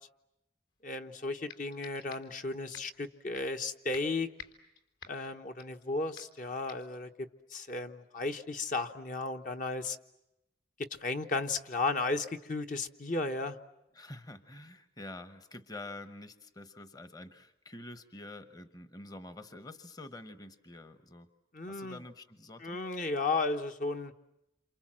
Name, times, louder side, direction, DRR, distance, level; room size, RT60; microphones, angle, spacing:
voice 1, 0.8-4.3 5.1-10.0 11.0-13.6 21.5-22.0 22.6-24.1, left 3 dB, 45° left, 6 dB, 1.1 m, -34 dB
sound 1, 0.9-1.0 1.5-2.4 2.7-3.0 3.3-3.6 3.9-5.9 6.2-6.4 6.7-7.0, left 7 dB, 70° left, 3.8 m, -50 dB
voice 2, 13.9-21.3 21.7-22.8, left 2 dB, 20° left, 10 dB, 1.0 m, -47 dB
28.5 x 27.5 x 7.5 m, 0.88 s
head